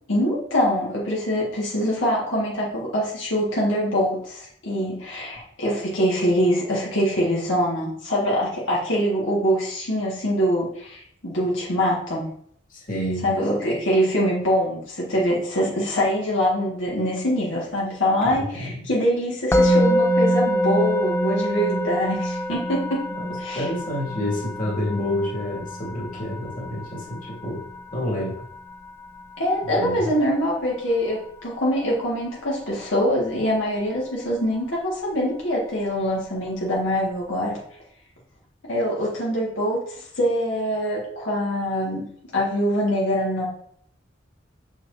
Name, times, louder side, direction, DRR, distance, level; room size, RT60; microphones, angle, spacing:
voice 1, 0.1-12.2 13.2-23.1 23.4-23.7 29.4-37.6 38.6-42.0 42.3-43.5, equal, 80° left, -5 dB, 1.8 m, -24 dB
voice 2, 12.7-13.3 18.2-18.8 23.1-27.6 27.9-28.4 29.7-30.1, left 1 dB, 45° left, -4 dB, 2.3 m, -29 dB
Musical instrument, 19.5-30.6, equal, 15° left, 0.5 m, -25 dB
6.5 x 6.3 x 2.7 m, 0.65 s
head